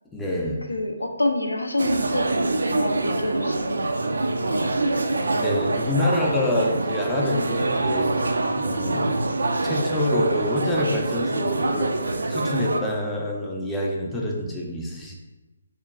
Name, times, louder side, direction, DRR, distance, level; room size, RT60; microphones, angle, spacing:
voice 1, 0.1-0.6 5.4-15.1, left 1 dB, 10° left, -3 dB, 0.5 m, -27 dB
voice 2, 0.7-3.9 4.5-5.0, left 1 dB, 80° left, 4 dB, 0.4 m, -28 dB
sound 1, 1.8-12.8, right 2 dB, 70° right, 0.3 m, -25 dB
3.7 x 2.2 x 3.6 m, 1.1 s
figure-of-eight pair, 140°, 0 cm